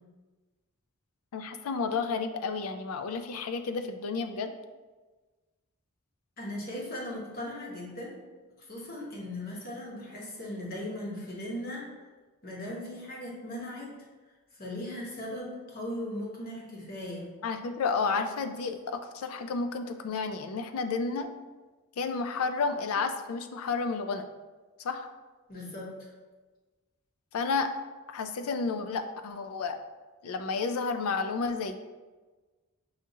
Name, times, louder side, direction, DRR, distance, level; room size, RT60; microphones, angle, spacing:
voice 1, 1.3-4.5 17.4-21.3 22.0-24.3 24.8-25.1 27.3-27.7 28.1-29.8 30.2-31.8, left 4 dB, 75° left, 8 dB, 0.4 m, -31 dB
voice 2, 6.4-11.9 12.4-14.0 14.5-17.3 25.5-26.1, left 1 dB, 40° left, -3 dB, 0.9 m, -38 dB
5.7 x 2.4 x 2.8 m, 1.3 s
head